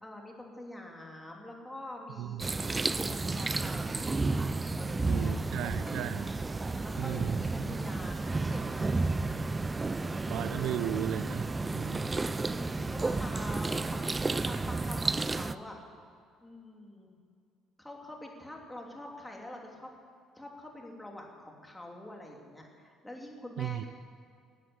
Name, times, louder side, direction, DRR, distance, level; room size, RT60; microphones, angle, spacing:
voice 1, 0.0-9.2 9.9-10.8 12.1-14.1 14.4-15.8 16.4-17.1 17.8-19.9 20.3-23.9, left 1 dB, 10° left, 0 dB, 3.1 m, -46 dB
sound 1, 2.4-15.5, right 3 dB, 20° right, 0.5 m, -32 dB
voice 2, 5.0-6.3 7.0-7.4 10.3-12.1 23.6-23.8, right 12 dB, 75° right, 13 dB, 0.5 m, -35 dB
12.5 x 8.5 x 9.6 m, 2.3 s
supercardioid pair, 90°, 0 cm